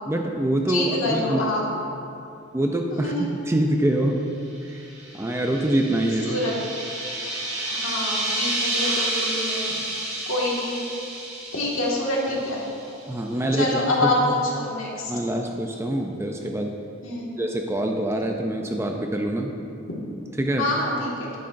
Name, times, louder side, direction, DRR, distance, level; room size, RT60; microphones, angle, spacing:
voice 1, 0.1-1.5 2.5-4.2 4.6-4.8 5.1-6.4 13.1-14.3 15.1-16.7 17.4-19.5 20.4-20.7, right 1 dB, 10° right, 2 dB, 0.4 m, -25 dB
voice 2, 0.7-1.6 2.9-3.3 6.2-6.5 7.7-9.7 10.2-10.7 11.5-12.7 13.5-15.1 17.0-17.3 20.6-21.3, left 1 dB, 70° left, -4 dB, 1.8 m, -26 dB
sound 1, 4.7-13.0, right 2 dB, 30° right, 1.3 m, -30 dB
10.0 x 9.6 x 2.6 m, 2.6 s
head